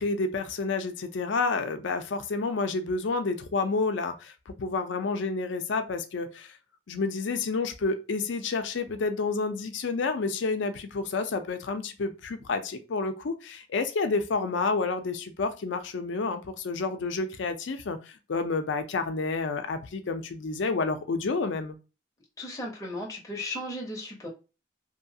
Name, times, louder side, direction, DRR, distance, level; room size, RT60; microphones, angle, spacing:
voice 1, 0.0-6.6 6.9-21.8, left 4 dB, 75° left, 0.5 m, -29 dB
voice 2, 22.4-24.3, left 1 dB, 15° left, 0.6 m, -36 dB
2.7 x 2.3 x 2.7 m
head